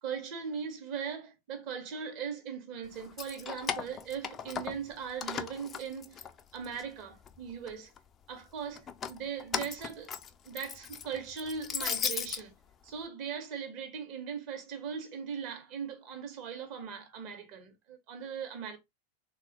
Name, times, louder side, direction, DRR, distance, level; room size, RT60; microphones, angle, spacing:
voice 1, 0.0-6.3 6.5-7.9 8.3-10.1 10.4-12.5 12.8-18.8, right 6 dB, 40° right, 0.9 m, -39 dB
Keys jangling, 3.0-4.9 5.2-6.8 7.2-8.0 8.8-12.4, left 7 dB, 25° left, 0.3 m, -37 dB
3.4 x 2.3 x 2.9 m
figure-of-eight pair, 90°, 0 cm